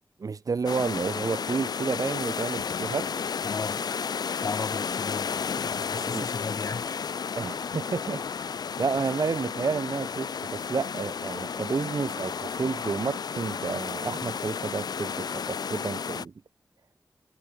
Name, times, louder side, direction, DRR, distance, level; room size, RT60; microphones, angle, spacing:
voice 1, 0.2-3.3 5.9-6.3 7.4-8.2 8.8-16.3, right 5 dB, 65° right, 1.3 m, -30 dB
sound 1, 0.7-16.3, left 6 dB, 85° left, 0.8 m, -32 dB
voice 2, 3.4-3.8 4.3-7.1 9.0-9.1, left 4 dB, 55° left, 1.1 m, -36 dB
wide cardioid pair, 80°, 7 cm